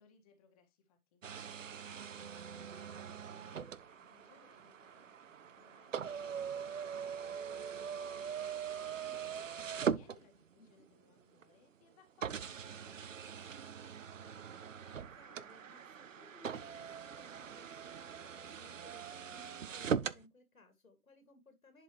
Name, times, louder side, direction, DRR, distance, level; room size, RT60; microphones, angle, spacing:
voice 1, 0.0-9.4 9.7-14.3, left 5 dB, 25° left, 5 dB, 1.8 m, -68 dB
sound 1, 1.2-10.7 11.4-11.5 12.2-20.2, right 7 dB, 60° right, 0.7 m, -41 dB
voice 2, 15.1-21.8, left 2 dB, 70° left, 7 dB, 2.4 m, -62 dB
11.0 x 5.1 x 3.2 m, 0.22 s
figure-of-eight pair, 140°, 45 cm